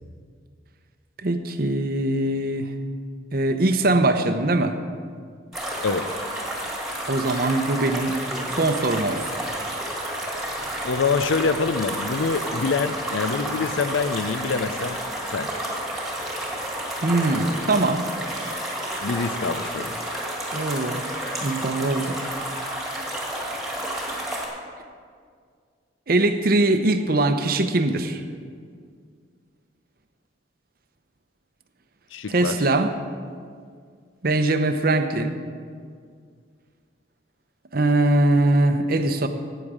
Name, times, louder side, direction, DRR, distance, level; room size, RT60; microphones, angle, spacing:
voice 1, 1.2-2.7 3.3-4.8 7.1-8.2 8.6-9.3 17.0-18.1 20.5-21.0 21.4-22.2 26.1-28.2 32.3-32.9 34.2-35.4 37.7-39.3, right 2 dB, 50° right, 8 dB, 0.7 m, -21 dB
sound 1, 5.5-24.5, right 1 dB, ahead, 2.0 m, -30 dB
voice 2, 10.8-15.0 15.3-15.5 19.0-20.0 32.1-32.6, left 4 dB, 80° left, 12 dB, 0.6 m, -25 dB
14.0 x 9.1 x 4.9 m, 2.1 s
head